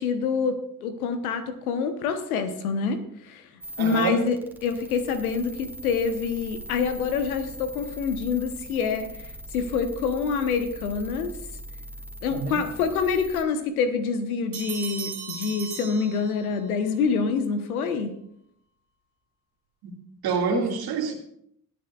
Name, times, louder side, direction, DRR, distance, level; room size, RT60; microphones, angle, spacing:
voice 1, 0.0-3.4 3.8-4.4 4.6-9.1 9.5-11.3 12.2-18.1 20.5-20.6, left 5 dB, 80° left, 9 dB, 1.1 m, -26 dB
sound 1, 3.6-13.4, right 1 dB, 5° right, 2.1 m, -41 dB
voice 2, 3.8-4.2 12.3-12.6 19.8-20.0 20.2-21.1, right 6 dB, 60° right, 3 dB, 2.2 m, -27 dB
Bell, 14.5-16.8, right 7 dB, 85° right, 2.5 m, -37 dB
19.5 x 9.9 x 2.4 m, 0.72 s
figure-of-eight pair, 45°, 43 cm